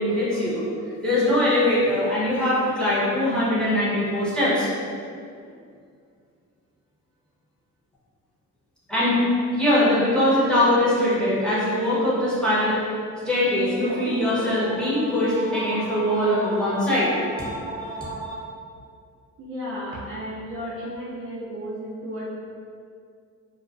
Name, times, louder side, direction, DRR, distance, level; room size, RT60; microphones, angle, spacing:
voice 1, 0.0-4.7 8.9-12.8 13.2-18.4, left 1 dB, 5° left, -10 dB, 0.9 m, -22 dB
voice 2, 19.4-22.3, equal, 45° right, -7 dB, 0.5 m, -33 dB
2.3 x 2.2 x 2.5 m, 2.2 s
cardioid pair, 90°, 30 cm